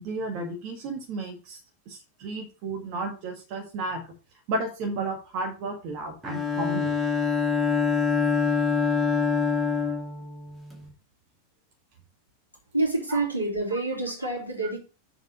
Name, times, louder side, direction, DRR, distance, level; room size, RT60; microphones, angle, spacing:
voice 1, 0.0-1.6 1.9-4.0 4.5-6.9 13.1-13.2, right 2 dB, 45° right, 3 dB, 1.7 m, -33 dB
Bowed string instrument, 6.2-10.8, left 5 dB, ahead, 2.4 m, -25 dB
voice 2, 12.7-14.8, right 2 dB, 85° right, -3 dB, 2.9 m, -27 dB
6.8 x 4.7 x 6.2 m, 0.34 s
figure-of-eight pair, 90°, 0 cm